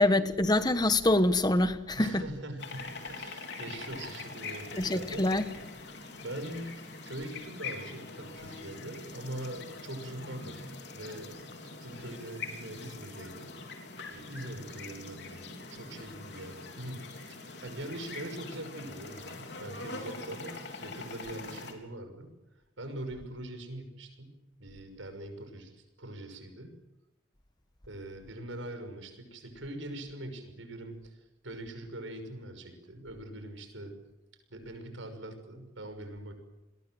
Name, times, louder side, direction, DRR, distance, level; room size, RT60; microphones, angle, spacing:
voice 1, 0.0-2.2 4.8-5.4, left 2 dB, 20° left, 11 dB, 1.3 m, -25 dB
voice 2, 2.0-5.3 6.2-6.8 7.1-11.4 11.8-13.5 14.1-22.3 22.8-26.7 27.9-31.2 31.4-33.9 34.5-36.3, right 1 dB, 85° right, 7 dB, 6.1 m, -42 dB
sound 1, 2.6-21.7, left 3 dB, 60° left, 3.9 m, -43 dB
29.5 x 21.5 x 7.8 m, 0.95 s
head